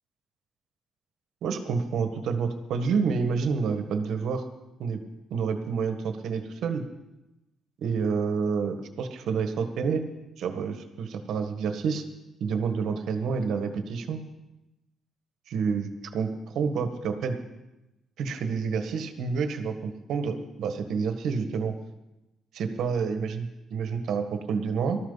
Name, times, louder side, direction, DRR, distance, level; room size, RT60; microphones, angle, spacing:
voice 1, 1.4-4.4 4.8-5.0 5.3-6.8 7.8-10.0 10.4-12.0 12.4-14.2 15.5-17.4 18.2-21.7 22.5-25.0, right 5 dB, 75° right, 7 dB, 1.6 m, -28 dB
19.0 x 13.0 x 4.1 m, 0.98 s
cardioid pair, 90°, 0 cm